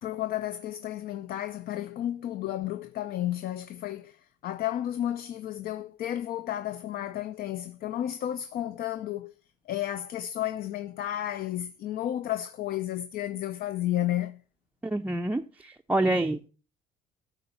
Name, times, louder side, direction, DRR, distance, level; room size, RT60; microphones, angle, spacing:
voice 1, 0.0-9.3 9.7-14.4, left 12 dB, 65° left, 0.6 m, -32 dB
voice 2, 14.8-16.5, right 1 dB, 10° right, 0.4 m, -27 dB
12.5 x 4.6 x 5.6 m
cardioid pair, 110°, 17 cm